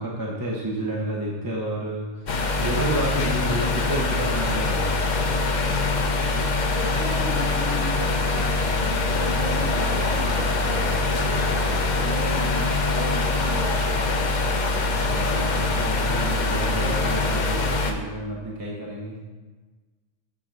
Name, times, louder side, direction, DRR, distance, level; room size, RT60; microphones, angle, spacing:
voice 1, 0.0-4.9 14.9-19.2, right 1 dB, 20° right, -4 dB, 0.9 m, -30 dB
sound 1, 2.3-17.9, left 3 dB, 45° left, 0.8 m, -23 dB
voice 2, 6.7-14.1, equal, 60° right, -8 dB, 1.7 m, -35 dB
7.1 x 3.9 x 6.0 m, 1.3 s
omnidirectional pair, 1.2 m